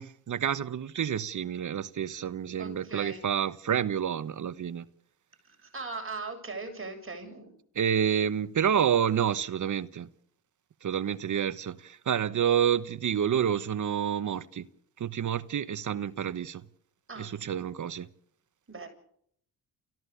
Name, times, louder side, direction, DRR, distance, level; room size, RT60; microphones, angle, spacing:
voice 1, 0.0-4.8 7.7-10.1 10.8-14.6 15.0-16.6 17.2-18.1, right 8 dB, 50° right, 1.0 m, -29 dB
voice 2, 2.6-3.3 5.4-7.5 17.1-17.5 18.7-18.9, right 3 dB, 30° right, 7.4 m, -40 dB
29.5 x 15.5 x 6.9 m
supercardioid pair, 55°, 40 cm